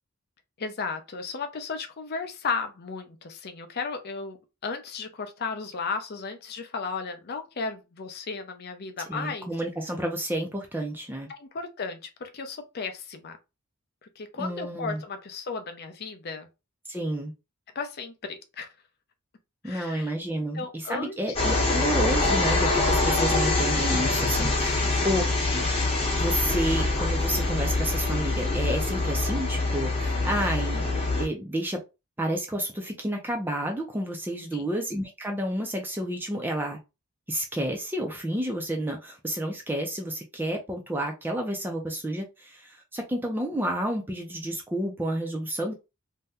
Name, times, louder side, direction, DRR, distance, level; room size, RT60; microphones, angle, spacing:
voice 1, 0.6-4.4 4.6-9.5 11.3-13.4 14.0-16.5 17.7-18.7 19.6-20.1 20.5-21.2 24.8-25.2 34.5-34.7, left 4 dB, 45° left, 0.5 m, -35 dB
voice 2, 9.1-11.3 14.4-15.0 16.9-17.3 19.6-25.2 25.5-25.7 26.2-31.8 32.2-36.8 37.3-45.7, right 1 dB, 10° right, 0.4 m, -30 dB
sound 1, 21.4-31.3, left 2 dB, 25° left, 0.9 m, -25 dB
2.7 x 2.1 x 3.4 m
head